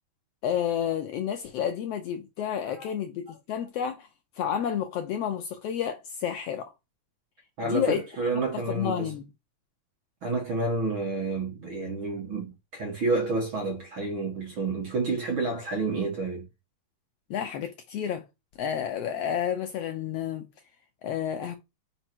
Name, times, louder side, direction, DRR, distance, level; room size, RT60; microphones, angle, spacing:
voice 1, 0.4-4.1 4.4-6.7 7.6-8.0 8.3-9.2 17.3-18.2 18.6-20.5 21.0-21.6, left 9 dB, 80° left, 1.4 m, -30 dB
voice 2, 7.6-9.1 10.2-16.5, right 3 dB, 50° right, 1.9 m, -29 dB
5.1 x 4.5 x 4.4 m
omnidirectional pair, 3.5 m